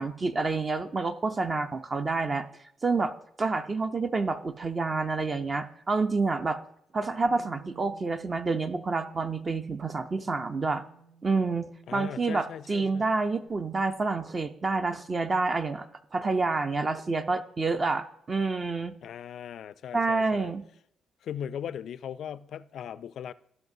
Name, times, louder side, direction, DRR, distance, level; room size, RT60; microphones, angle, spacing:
voice 1, 0.0-2.5 2.8-3.1 3.4-6.6 6.9-10.8 11.2-15.9 16.1-18.9 19.9-20.6, right 3 dB, 35° right, 0.5 m, -28 dB
Bass guitar, 7.2-13.5, right 6 dB, 85° right, 0.7 m, -54 dB
voice 2, 11.9-13.1 19.0-20.5 21.2-23.3, left 9 dB, 65° left, 0.3 m, -38 dB
17.0 x 5.9 x 2.7 m
cardioid pair, 90°, 0 cm